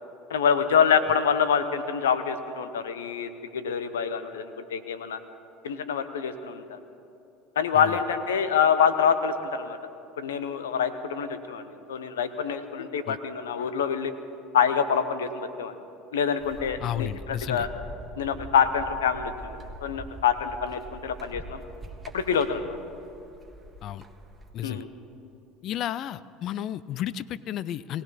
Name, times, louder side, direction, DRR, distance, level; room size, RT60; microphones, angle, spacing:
voice 1, 0.3-5.2 5.6-6.8 7.6-9.8 10.2-14.1 14.5-15.8 16.1-17.7 18.2-21.6 22.1-22.7 24.6-24.9, left 7 dB, 90° left, 11 dB, 0.9 m, -26 dB
sound 1, 16.4-24.5, right 1 dB, 20° right, 1.6 m, -43 dB
voice 2, 16.8-17.7 23.8-24.0 24.5-24.8 25.6-28.0, left 11 dB, 55° left, 18 dB, 0.4 m, -32 dB
20.0 x 17.0 x 4.2 m, 2.8 s
hypercardioid pair, 80°, 0 cm